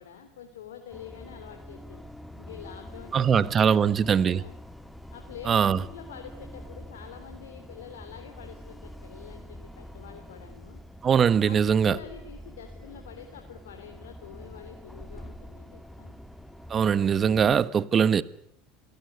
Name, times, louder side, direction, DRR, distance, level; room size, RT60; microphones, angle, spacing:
voice 1, 0.0-2.0 2.4-4.5 5.1-10.8 11.4-16.2, left 9 dB, 85° left, 3.0 m, -46 dB
sound 1, 0.9-17.7, equal, ahead, 2.1 m, -46 dB
voice 2, 3.1-4.4 5.5-5.8 11.0-12.0 16.7-18.2, right 7 dB, 35° right, 1.3 m, -21 dB
27.5 x 17.5 x 9.5 m
hypercardioid pair, 90°, 0 cm